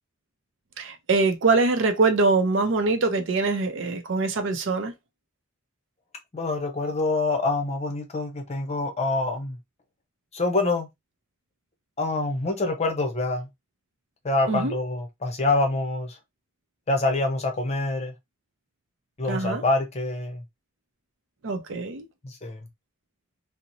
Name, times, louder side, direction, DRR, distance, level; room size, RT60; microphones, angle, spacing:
voice 1, 0.8-4.9 14.5-14.8 19.3-19.6 21.4-22.0, right 3 dB, 70° right, 0.5 m, -23 dB
voice 2, 6.3-9.6 10.3-10.9 12.0-13.5 14.2-16.2 16.9-18.1 19.2-20.4 22.2-22.7, left 2 dB, 35° left, 0.6 m, -26 dB
2.9 x 2.0 x 2.5 m
head